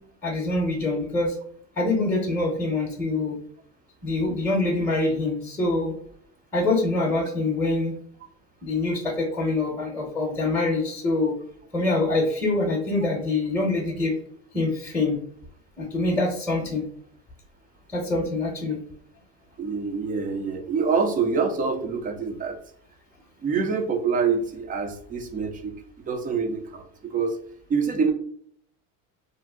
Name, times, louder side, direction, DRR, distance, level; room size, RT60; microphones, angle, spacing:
voice 1, 0.2-1.4 1.8-3.4 4.0-5.9 6.5-8.0 8.6-11.3 11.7-14.1 14.5-15.2 15.8-16.8 17.9-18.8, left 2 dB, 5° left, -1 dB, 0.7 m, -25 dB
voice 2, 19.6-22.6 23.4-25.8 26.1-27.4 27.7-28.1, right 5 dB, 25° right, 6 dB, 0.3 m, -26 dB
2.6 x 2.1 x 3.5 m, 0.65 s
supercardioid pair, 115°, 39 cm